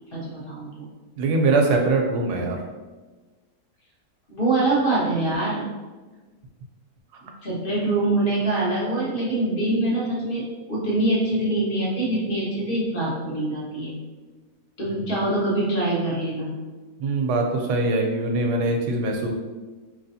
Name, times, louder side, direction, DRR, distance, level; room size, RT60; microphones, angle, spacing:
voice 1, 0.1-0.9 4.3-5.7 7.2-14.0 14.8-16.6, right 2 dB, 35° left, -7 dB, 1.4 m, -24 dB
voice 2, 1.2-2.6 14.9-15.1 17.0-19.3, right 2 dB, 85° right, 2 dB, 1.2 m, -22 dB
4.8 x 3.3 x 2.7 m, 1.3 s
omnidirectional pair, 1.7 m